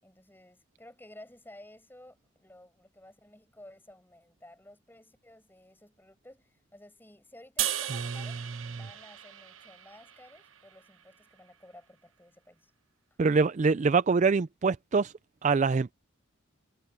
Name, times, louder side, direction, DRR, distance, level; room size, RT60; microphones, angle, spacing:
voice 1, 0.0-8.4 8.7-12.7, left 1 dB, 10° left, 6.8 m, -54 dB
sound 1, 7.6-10.9, right 12 dB, 70° right, 1.0 m, -36 dB
voice 2, 13.2-15.1 15.4-15.9, right 4 dB, 35° right, 0.3 m, -24 dB
head